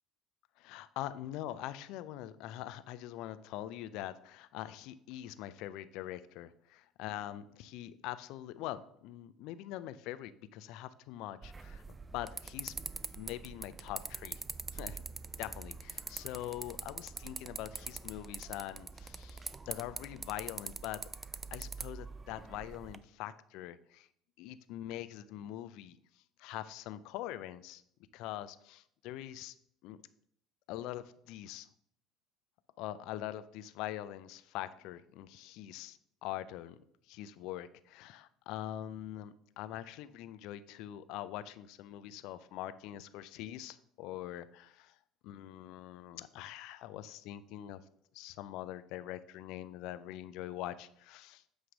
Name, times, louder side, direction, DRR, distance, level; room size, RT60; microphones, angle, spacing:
voice 1, 0.6-12.7 13.2-14.4 14.7-15.0 15.4-21.1 21.5-24.1 24.4-26.0 26.4-27.8 28.1-29.5 29.8-30.0 30.7-31.7 32.8-36.8 37.1-45.0 45.2-47.8 48.1-51.4, left 13 dB, 70° left, 14 dB, 0.4 m, -43 dB
sound 1, 11.4-23.0, right 4 dB, 25° right, 0.4 m, -44 dB
8.1 x 3.2 x 5.1 m, 0.69 s
hypercardioid pair, 75°, 0 cm